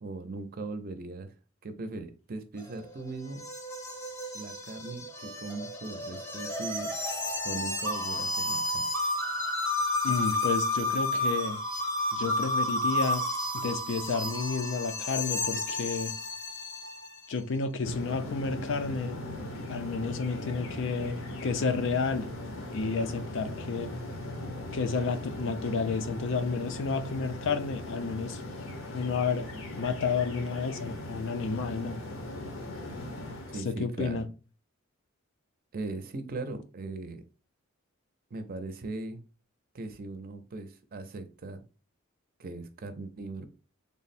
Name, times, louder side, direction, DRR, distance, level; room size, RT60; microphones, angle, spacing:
voice 1, 0.0-1.3 1.6-3.4 4.3-7.0 7.4-8.9 33.5-34.3 35.7-37.2 38.3-39.2 39.7-41.6 42.4-43.5, right 3 dB, 45° right, 0.5 m, -39 dB
sound 1, 2.6-17.2, left 1 dB, 15° left, 0.6 m, -31 dB
voice 2, 10.0-11.6 12.1-13.3 13.5-16.1 17.3-19.2 19.7-22.3 22.7-23.9 24.7-28.4 28.9-29.5 29.8-32.0 33.6-34.3, left 4 dB, 65° left, 0.5 m, -31 dB
sound 2, 17.8-33.6, left 1 dB, 80° left, 0.8 m, -39 dB
3.4 x 2.0 x 4.1 m
head